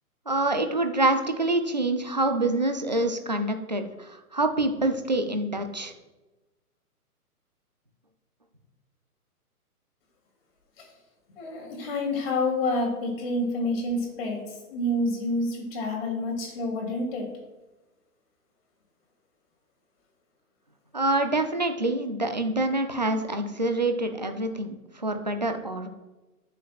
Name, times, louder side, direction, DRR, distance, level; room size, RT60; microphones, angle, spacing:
voice 1, 0.3-5.9 20.9-25.9, right 2 dB, 30° right, 6 dB, 0.4 m, -26 dB
voice 2, 11.4-17.3, left 1 dB, 40° left, -1 dB, 2.8 m, -28 dB
12.5 x 6.6 x 2.3 m, 1.1 s
hypercardioid pair, 165°, 46 cm